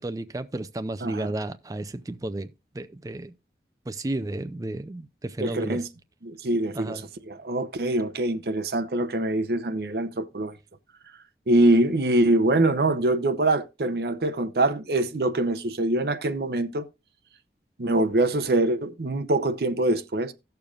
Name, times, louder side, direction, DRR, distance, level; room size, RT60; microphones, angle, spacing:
voice 1, 0.0-3.3 3.9-5.9 6.7-7.0, right 1 dB, 20° right, 0.4 m, -33 dB
voice 2, 5.4-5.9 6.2-7.0 7.3-10.6 11.5-16.9 17.8-20.3, right 2 dB, 60° right, 0.7 m, -24 dB
16.5 x 6.8 x 2.4 m
head